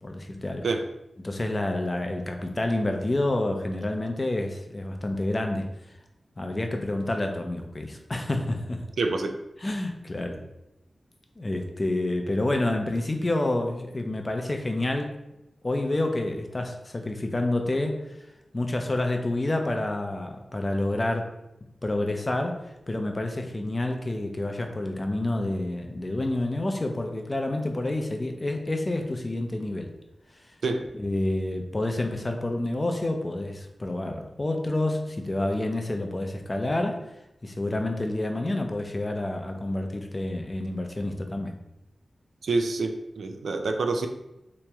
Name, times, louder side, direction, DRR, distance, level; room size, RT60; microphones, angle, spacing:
voice 1, 0.0-0.7 1.2-5.7 6.4-8.8 9.6-10.4 11.4-15.1 15.6-18.0 18.5-21.3 21.8-29.9 30.9-37.0 37.4-41.5, left 1 dB, 30° left, 4 dB, 0.5 m, -28 dB
voice 2, 9.0-9.3 30.6-30.8 42.4-44.1, right 3 dB, 90° right, 5 dB, 0.3 m, -27 dB
3.0 x 2.9 x 3.4 m, 0.90 s
wide cardioid pair, 95°, 0 cm